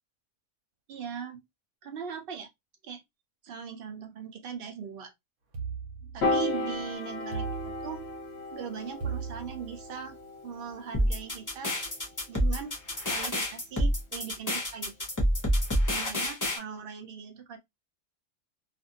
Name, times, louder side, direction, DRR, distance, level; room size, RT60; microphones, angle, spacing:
voice 1, 0.9-1.4 1.8-2.5 2.8-3.0 3.4-5.1 6.0-8.1 8.5-10.2 10.4-12.0 12.3-14.9 15.9-17.6, right 7 dB, 55° right, 0.6 m, -40 dB
sound 1, 5.5-6.6 7.3-8.4 9.0-10.1, right 6 dB, 80° right, 1.3 m, -38 dB
Piano, 6.2-12.6, left 2 dB, 55° left, 0.9 m, -35 dB
sound 2, 10.9-16.6, equal, 20° left, 0.6 m, -27 dB
2.6 x 2.5 x 2.6 m
omnidirectional pair, 1.5 m